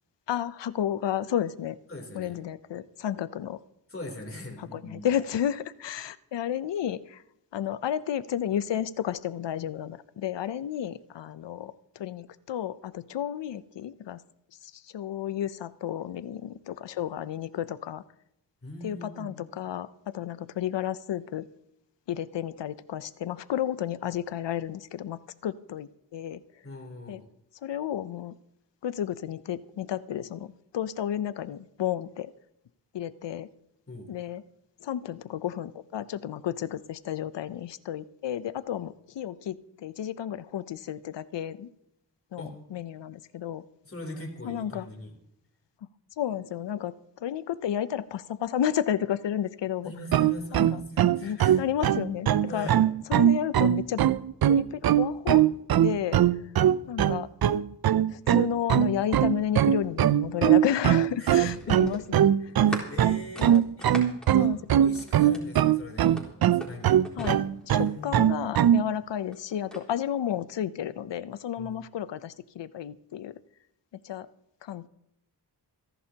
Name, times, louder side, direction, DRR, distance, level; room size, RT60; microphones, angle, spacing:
voice 1, 0.3-1.8 2.1-3.6 4.6-7.2 7.5-14.2 14.6-18.0 18.8-21.5 22.1-26.4 27.1-27.2 27.6-28.3 28.8-32.3 32.9-33.5 34.1-34.4 34.8-41.7 42.3-43.6 44.4-44.9 46.2-46.9 47.2-49.9 50.5-50.8 51.2-52.7 53.1-54.0 54.5-55.4 55.8-56.4 56.9-57.3 58.1-62.2 63.4-63.6 63.9-64.0 64.3-64.6 67.2-73.3 74.0-74.3 74.6-74.9, left 10 dB, 85° left, 16 dB, 0.7 m, -32 dB
voice 2, 1.9-2.4 3.9-5.1 18.6-19.5 26.6-27.2 33.9-34.1 42.4-42.6 43.8-45.1 49.8-51.6 52.5-52.8 61.2-62.3 62.6-63.9 64.4-64.5 64.8-67.0 67.7-68.2 71.6-71.8, left 1 dB, 30° left, 1 dB, 3.3 m, -41 dB
sound 1, 50.1-68.9, right 11 dB, 60° right, 0.5 m, -21 dB
sound 2, 60.3-65.6 66.0-68.1 69.1-69.9, equal, ahead, 3.9 m, -41 dB
28.0 x 11.0 x 2.9 m, 0.82 s
wide cardioid pair, 75°, 42 cm